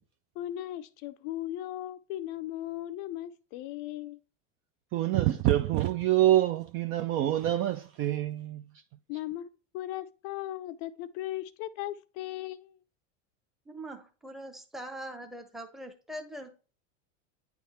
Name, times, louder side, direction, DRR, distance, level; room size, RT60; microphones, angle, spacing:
voice 1, 0.4-4.2 9.1-9.5 9.7-12.8, left 14 dB, 50° left, 0.5 m, -37 dB
voice 2, 4.9-8.6, right 13 dB, 35° right, 0.4 m, -26 dB
voice 3, 13.7-16.5, right 1 dB, ahead, 0.8 m, -42 dB
9.3 x 3.6 x 4.3 m
supercardioid pair, 125°, 37 cm